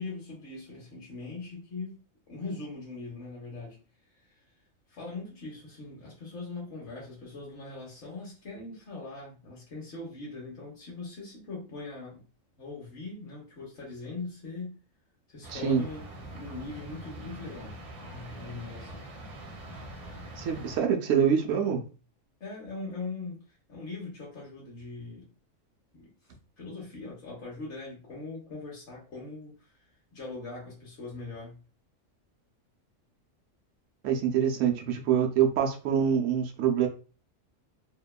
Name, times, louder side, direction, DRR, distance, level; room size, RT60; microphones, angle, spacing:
voice 1, 0.0-2.0 2.3-3.8 4.1-4.4 4.9-12.2 12.6-14.8 15.3-16.0 16.3-19.0 22.4-25.3 25.9-29.8 30.1-31.6, left 3 dB, 60° left, -4 dB, 1.0 m, -41 dB
sound 1, 15.4-20.8, right 1 dB, 50° right, 0.9 m, -44 dB
voice 2, 15.5-15.8 20.4-21.8 34.0-36.9, right 8 dB, 75° right, 3 dB, 0.9 m, -25 dB
2.8 x 2.1 x 2.2 m, 0.35 s
omnidirectional pair, 1.4 m